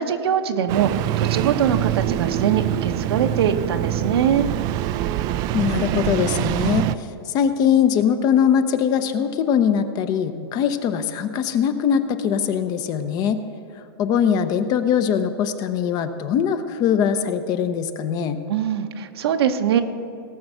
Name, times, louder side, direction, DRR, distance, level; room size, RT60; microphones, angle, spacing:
voice 1, 0.0-4.5 18.5-19.8, right 8 dB, 75° right, 7 dB, 1.0 m, -22 dB
Engine starting, 0.7-7.0, right 12 dB, 30° right, 0.3 m, -24 dB
voice 2, 5.5-13.4 14.0-18.4, left 8 dB, 30° left, 10 dB, 0.7 m, -21 dB
18.0 x 6.0 x 6.7 m, 2.6 s
hypercardioid pair, 145°, 13 cm